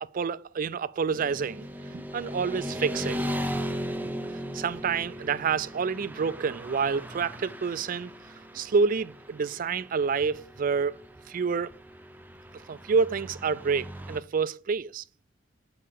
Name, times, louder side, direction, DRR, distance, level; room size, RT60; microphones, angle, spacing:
voice 1, 0.1-1.7 1.9-3.2 4.5-8.1 8.5-10.9 11.3-11.7 12.7-15.0, right 5 dB, 45° right, 0.4 m, -28 dB
Motorcycle / Traffic noise roadway noise, 1.1-14.2, equal, 10° right, 0.6 m, -38 dB
7.5 x 5.5 x 6.6 m
head